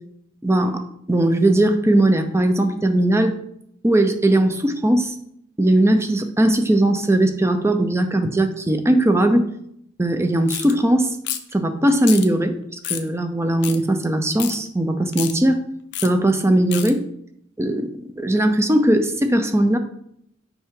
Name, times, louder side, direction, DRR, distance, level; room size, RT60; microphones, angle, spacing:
voice 1, 0.4-3.4 3.8-5.1 5.6-9.4 10.0-11.1 11.5-12.5 12.9-15.6 16.0-17.0 17.6-17.9 18.2-19.8, right 1 dB, 15° right, 8 dB, 0.6 m, -19 dB
sound 1, 10.5-10.7 11.2-11.5 12.0-12.3 12.8-13.1 13.6-13.8 14.4-14.6 15.1-15.3 15.9-16.1 16.7-16.9, left 11 dB, 60° left, 0.6 m, -28 dB
7.1 x 5.6 x 3.7 m, 0.72 s
head